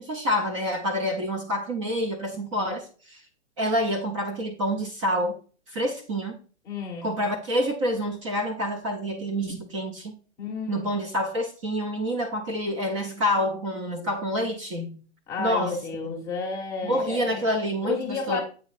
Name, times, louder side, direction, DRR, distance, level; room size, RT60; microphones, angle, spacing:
voice 1, 0.0-3.2 3.6-5.4 5.7-6.4 7.0-10.1 10.7-15.0 15.4-15.8 16.0-16.2 16.8-18.4, equal, 30° right, 4 dB, 0.6 m, -27 dB
voice 2, 6.6-7.1 10.4-11.0 15.3-17.5 17.8-18.4, left 5 dB, 10° left, -2 dB, 0.8 m, -32 dB
7.8 x 3.0 x 4.1 m, 0.38 s
hypercardioid pair, 165°, 34 cm